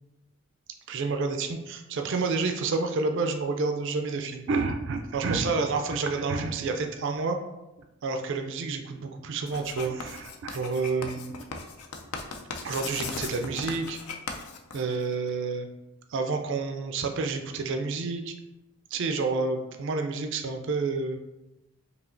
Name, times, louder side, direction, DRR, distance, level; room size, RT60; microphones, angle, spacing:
voice 1, 0.9-7.4 8.0-11.4 12.6-14.0 14.7-15.7 16.1-18.3 18.9-21.2, right 4 dB, 55° right, 5 dB, 0.3 m, -29 dB
Writing, 9.5-15.3, left 4 dB, 85° left, 0.5 m, -38 dB
4.8 x 2.8 x 2.5 m, 0.98 s
head